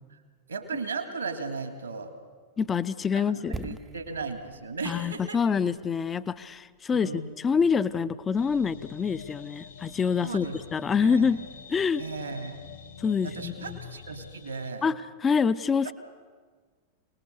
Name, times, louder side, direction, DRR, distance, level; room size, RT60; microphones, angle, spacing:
voice 1, 0.5-2.1 3.1-3.2 3.6-5.4 6.9-7.3 10.2-10.6 11.0-11.4 12.0-12.7 13.2-14.9 15.8-15.9, right 4 dB, 80° right, 6 dB, 2.8 m, -36 dB
voice 2, 2.6-3.8 4.9-10.5 10.7-12.0 13.0-13.8 14.8-15.9, left 6 dB, 20° left, 14 dB, 0.7 m, -26 dB
sound 1, 3.5-7.5 7.7-7.8, right 5 dB, 15° right, 0.7 m, -44 dB
sound 2, 8.4-14.7, left 7 dB, 65° left, 1.7 m, -46 dB
27.5 x 20.0 x 6.9 m, 1.5 s
figure-of-eight pair, 90°, 0 cm